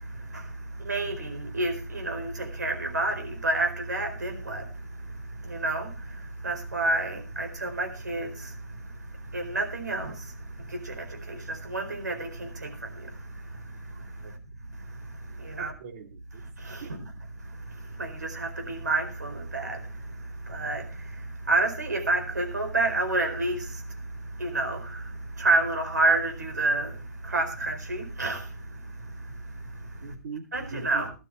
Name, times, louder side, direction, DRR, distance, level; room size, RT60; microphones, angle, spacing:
voice 1, 0.0-0.5 0.8-4.7 5.4-8.6 9.3-10.3 10.6-13.1 13.5-13.6 13.9-14.4 15.4-15.7 16.6-17.0 17.7-19.9 20.4-23.8 24.4-27.0 27.2-29.1 29.7-29.9 30.5-31.1, right 2 dB, 80° right, 4.3 m, -29 dB
voice 2, 15.6-16.4 16.8-17.1 30.0-31.1, right 4 dB, 50° right, 3.0 m, -41 dB
17.0 x 12.0 x 3.2 m
figure-of-eight pair, 125°, 9 cm